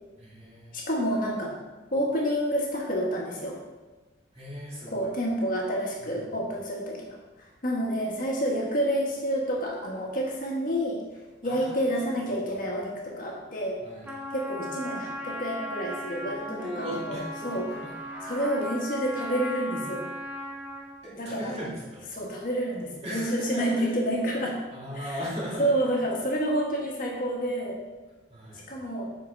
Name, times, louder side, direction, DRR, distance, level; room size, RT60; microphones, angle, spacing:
voice 1, 0.2-0.8 4.3-5.1 6.0-6.3 11.4-11.9 13.8-14.1 16.5-18.3 21.0-22.1 23.0-23.9 24.7-26.0 28.3-28.6, equal, 35° right, -6 dB, 2.3 m, -38 dB
voice 2, 0.7-1.5 1.9-3.6 4.9-11.0 11.4-13.8 14.3-17.7 18.2-20.1 21.1-21.5 22.1-24.6 24.9-25.2 25.6-27.8 28.7-29.0, equal, 50° left, -2 dB, 1.3 m, -29 dB
Trumpet, 14.0-21.0, equal, 10° right, 0.8 m, -37 dB
5.6 x 5.2 x 5.3 m, 1.2 s
head